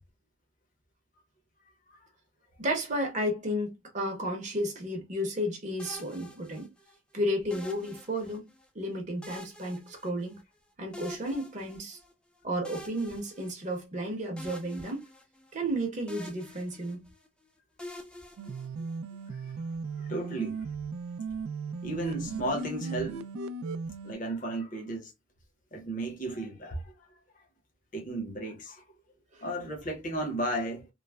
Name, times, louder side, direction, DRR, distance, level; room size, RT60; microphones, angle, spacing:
voice 1, 2.6-6.7 7.1-8.4 8.7-10.4 10.8-12.0 12.4-15.1 15.5-17.0 29.3-29.5, equal, 35° right, 0.7 m, -32 dB
sound 1, 5.8-7.0 7.5-8.6 9.2-10.6 10.9-12.1 12.6-14.0 14.4-15.8 16.1-17.3 17.8-19.2, left 1 dB, 5° left, 0.3 m, -47 dB
sound 2, 18.4-24.1, right 4 dB, 85° right, 0.3 m, -37 dB
voice 2, 20.0-20.6 21.8-23.2 24.0-25.1 25.7-26.9 27.9-28.8 29.4-30.9, right 1 dB, 40° left, 0.8 m, -34 dB
3.1 x 2.0 x 2.2 m
head